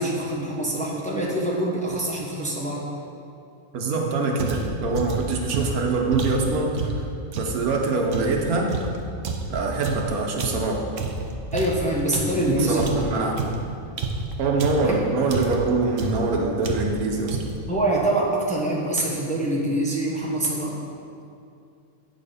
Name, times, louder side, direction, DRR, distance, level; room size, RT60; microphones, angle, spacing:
voice 1, 0.0-2.9 11.5-13.0 14.8-14.9 17.7-20.8, right 1 dB, 5° left, -3 dB, 0.9 m, -25 dB
voice 2, 3.7-7.0 7.4-8.8 9.5-10.9 12.3-13.4 14.4-17.4, right 3 dB, 85° right, 1 dB, 1.5 m, -24 dB
sound 1, 4.4-7.6 8.1-12.5 12.8-15.0 15.3-15.7 16.0-16.3 16.6-17.0 17.3-17.7, right 4 dB, 60° right, 1.1 m, -29 dB
8.3 x 6.5 x 5.1 m, 2.5 s
omnidirectional pair, 1.5 m